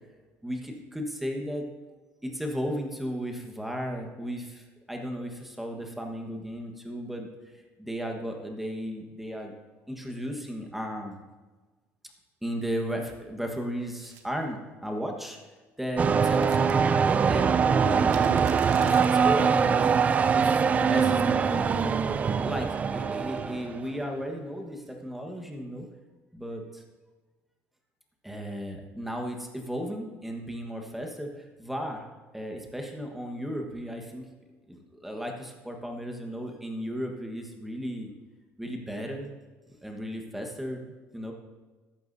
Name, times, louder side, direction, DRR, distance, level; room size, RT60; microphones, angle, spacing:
voice 1, 0.4-1.7 2.2-7.3 7.8-9.5 9.9-11.2 12.4-15.4 15.8-16.7 17.1-18.4 18.8-19.8 20.3-20.6 20.9-21.7 22.2-25.9 26.3-26.8 28.2-32.1 32.3-34.2 34.7-38.1 38.6-39.3 39.8-41.3, equal, 5° right, 2 dB, 1.4 m, -35 dB
sound 1, 13.9-14.3 16.2-16.7 17.2-17.3 18.1-19.1, right 10 dB, 75° right, 1.1 m, -47 dB
sound 2, 16.0-23.8, right 6 dB, 25° right, 0.4 m, -23 dB
14.0 x 11.5 x 2.8 m, 1.3 s
cardioid pair, 140°, 5 cm